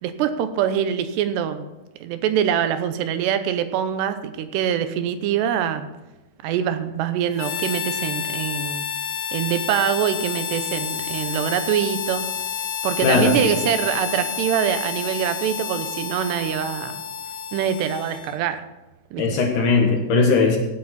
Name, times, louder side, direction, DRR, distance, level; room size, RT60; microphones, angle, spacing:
voice 1, 0.0-1.7 2.0-5.9 6.4-8.8 9.3-12.3 12.8-17.0 17.5-18.6 19.1-19.2, right 9 dB, 85° right, 10 dB, 3.0 m, -24 dB
Harmonica, 7.4-18.5, left 8 dB, 85° left, 3.1 m, -30 dB
voice 2, 13.0-13.5 19.2-20.6, left 4 dB, 60° left, 2 dB, 2.5 m, -19 dB
16.5 x 9.1 x 4.2 m, 1.1 s
omnidirectional pair, 4.8 m